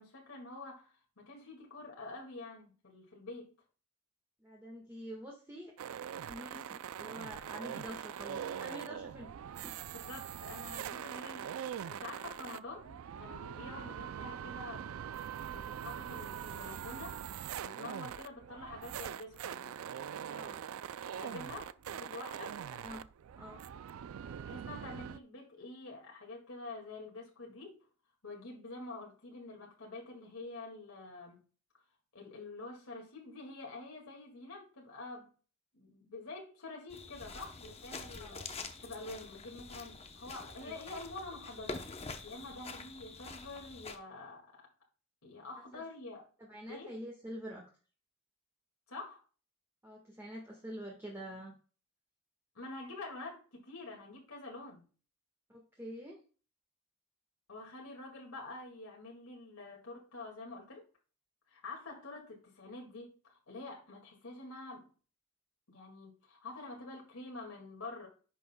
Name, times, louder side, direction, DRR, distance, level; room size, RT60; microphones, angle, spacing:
voice 1, 0.0-3.5 8.9-9.0 9.9-14.9 15.4-17.2 17.6-19.7 21.2-22.6 24.4-27.9 28.2-31.4 32.1-35.3 35.7-38.5 38.8-41.8 42.2-44.5 45.2-46.2 46.7-47.0 48.9-49.2 52.6-54.8 57.5-60.9 61.5-64.9 65.7-68.1, left 2 dB, 80° left, 2.0 m, -47 dB
voice 2, 4.4-5.7 6.3-9.8 20.2-20.6 22.7-23.0 23.4-23.6 38.1-38.4 40.6-40.7 45.7-45.8 46.4-47.7 49.8-51.6 55.5-56.2, equal, 10° right, 1.5 m, -47 dB
sound 1, 5.8-25.2, right 9 dB, 75° right, 0.3 m, -43 dB
sound 2, 36.9-44.0, left 3 dB, 30° left, 0.8 m, -46 dB
10.5 x 6.3 x 2.2 m
head